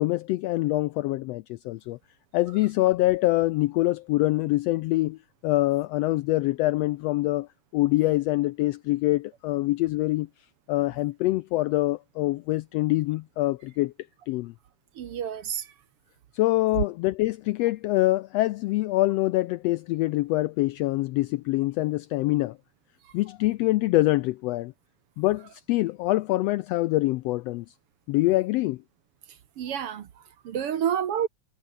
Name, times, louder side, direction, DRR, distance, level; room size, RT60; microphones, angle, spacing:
voice 1, 0.0-2.0 2.3-5.2 5.4-7.5 7.7-10.3 10.7-13.9 14.3-14.5 16.3-22.6 23.1-24.7 25.2-27.6 28.1-28.8, left 18 dB, 80° left, 1.5 m, -25 dB
voice 2, 15.0-15.7 23.1-23.2 29.6-31.3, right 9 dB, 60° right, 2.0 m, -29 dB
omnidirectional pair, 3.3 m